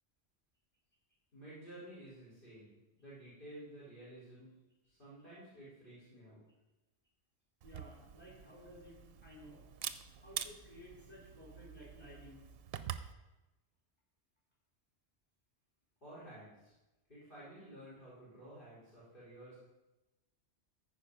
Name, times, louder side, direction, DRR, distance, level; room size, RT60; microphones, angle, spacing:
voice 1, 1.3-4.5 4.9-6.4 16.0-16.7 17.1-19.6, right 1 dB, 50° left, -10 dB, 4.1 m, -53 dB
voice 2, 7.6-9.6 10.2-12.4, left 1 dB, 10° left, -5 dB, 4.2 m, -55 dB
Camera, 7.6-13.1, right 9 dB, 65° right, 0.8 m, -46 dB
14.0 x 5.1 x 5.3 m, 1.0 s
omnidirectional pair, 1.1 m